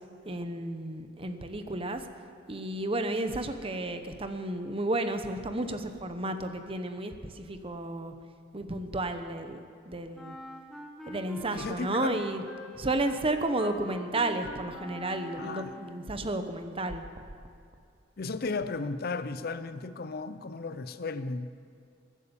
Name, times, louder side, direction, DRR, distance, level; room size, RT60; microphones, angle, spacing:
voice 1, 0.2-2.1 2.5-8.1 8.5-10.4 11.1-12.4 12.8-17.0, right 2 dB, 30° right, 8 dB, 0.9 m, -32 dB
Wind instrument woodwind instrument, 10.1-16.2, left 1 dB, ahead, 1.5 m, -45 dB
voice 2, 11.5-12.1 15.4-15.7 18.2-21.5, left 3 dB, 50° left, 12 dB, 0.6 m, -35 dB
21.5 x 8.4 x 7.0 m, 2.4 s
head